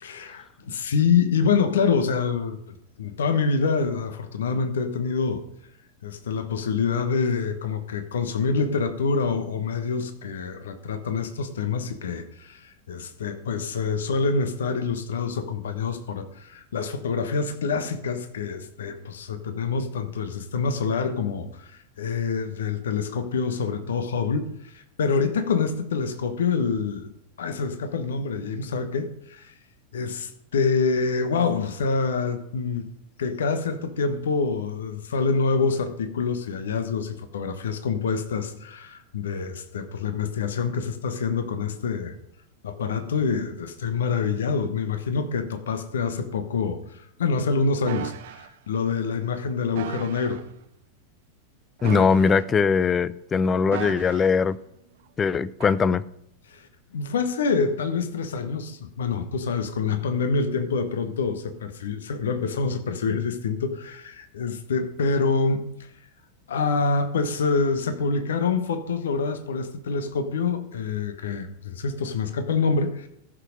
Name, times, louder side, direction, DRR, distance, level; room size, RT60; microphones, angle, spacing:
voice 1, 0.0-5.4 6.0-27.1 27.4-29.5 29.9-32.9 33.2-42.1 42.6-50.4 56.5-56.7 56.9-65.6 66.5-73.1, left 5 dB, 65° left, 1.2 m, -26 dB
sound 1, 47.9-48.5 49.7-50.4 51.8-52.7 53.7-54.5 55.6-55.8, right 11 dB, 55° right, 0.7 m, -35 dB
voice 2, 51.8-54.6 55.2-56.0, left 5 dB, 20° left, 0.5 m, -21 dB
14.5 x 6.4 x 5.1 m
figure-of-eight pair, 90°, 0 cm